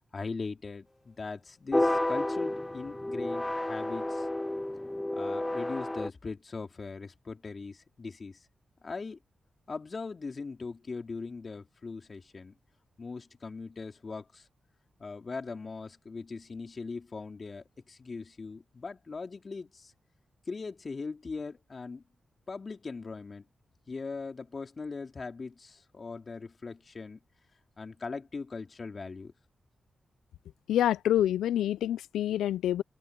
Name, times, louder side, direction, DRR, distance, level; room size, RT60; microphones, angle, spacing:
voice 1, 0.1-4.3 5.1-8.5 8.8-9.2 9.7-12.5 13.0-14.5 15.0-19.9 20.5-22.0 22.5-23.5 23.9-27.2 27.8-29.3, left 4 dB, 50° left, 3.6 m, -40 dB
sound 1, 1.7-6.1, left 1 dB, 15° left, 0.8 m, -31 dB
voice 2, 30.7-32.8, left 11 dB, 85° left, 0.5 m, -27 dB
supercardioid pair, 40°, 0 cm